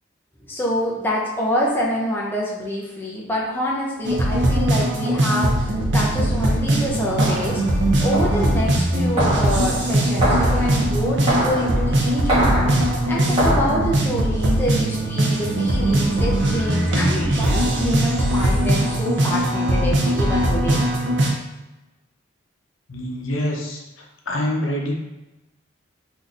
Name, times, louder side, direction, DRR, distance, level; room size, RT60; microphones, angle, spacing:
voice 1, 0.4-20.8, equal, 10° left, -5 dB, 0.5 m, -26 dB
sound 1, 4.0-21.3, right 1 dB, 65° right, 0.5 m, -20 dB
sound 2, 6.9-13.8, right 1 dB, 25° right, 1.5 m, -25 dB
voice 2, 22.9-23.8 24.3-24.9, left 1 dB, 85° left, -1 dB, 0.6 m, -25 dB
3.6 x 2.6 x 2.4 m, 1.0 s
head